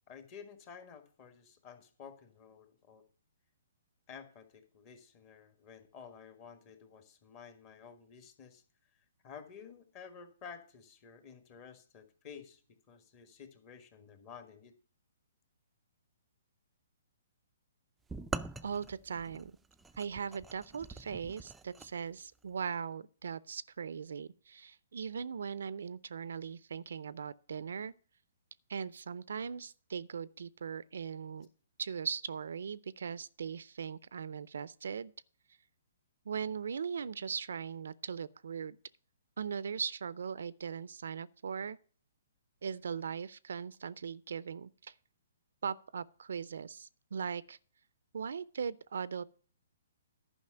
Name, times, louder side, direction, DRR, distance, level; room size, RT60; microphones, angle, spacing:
voice 1, 0.1-3.0 4.1-8.6 9.2-12.6 12.9-14.7 18.3-18.4, left 6 dB, 30° left, 1.6 m, -52 dB
sound 1, 18.1-21.9, right 4 dB, 10° right, 0.4 m, -43 dB
voice 2, 18.6-19.5 20.0-27.9 28.7-31.5 31.8-35.1 36.3-38.8 39.4-41.8 42.6-44.9 45.6-47.6 48.1-49.2, right 6 dB, 75° right, 0.5 m, -39 dB
10.5 x 5.4 x 7.7 m
hypercardioid pair, 140°, 0 cm